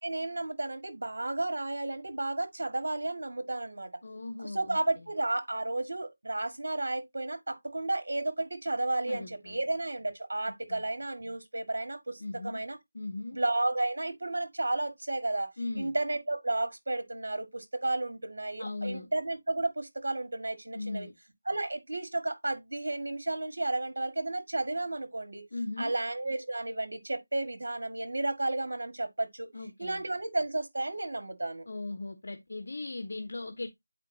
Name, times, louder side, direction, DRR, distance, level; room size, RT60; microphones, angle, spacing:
voice 1, 0.0-3.9 4.4-12.8 13.3-21.1 21.5-25.4 25.8-29.5 29.8-31.7, right 2 dB, 70° right, 2.1 m, -32 dB
voice 2, 4.0-5.1 9.1-9.6 10.7-10.9 12.2-12.6 12.9-13.4 15.6-16.0 18.6-19.1 20.7-21.1 25.5-25.9 29.5-30.1 31.7-33.7, left 2 dB, 55° left, 1.2 m, -38 dB
9.7 x 5.0 x 2.8 m
figure-of-eight pair, 175°, 0 cm